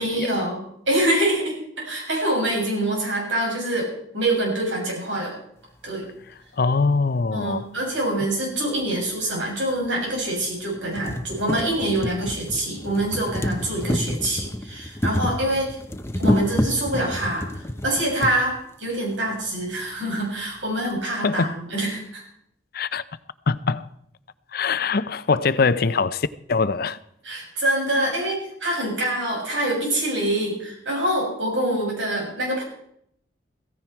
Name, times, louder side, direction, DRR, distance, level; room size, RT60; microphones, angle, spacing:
voice 1, 0.0-5.3 5.8-6.1 7.3-15.8 16.2-22.2 27.2-32.6, right 1 dB, 80° right, 7.1 m, -25 dB
voice 2, 6.6-7.7 21.2-21.5 22.7-23.0 23.5-23.9 24.5-27.0, left 4 dB, 55° left, 0.6 m, -23 dB
sound 1, 8.8-8.9 9.9-10.0 10.4-10.5 10.8-18.4 19.3-19.4 19.6-19.7, equal, 15° left, 0.9 m, -28 dB
16.0 x 15.5 x 4.6 m
head